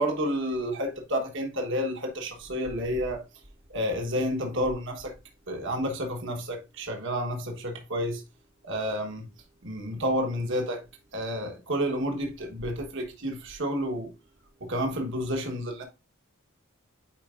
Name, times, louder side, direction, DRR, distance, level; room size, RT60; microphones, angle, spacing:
voice 1, 0.0-3.2 3.7-5.1 5.5-8.2 8.6-9.3 9.6-10.8 11.1-14.1 14.6-15.8, equal, 60° right, 1.2 m, -30 dB
8.9 x 4.6 x 2.4 m
head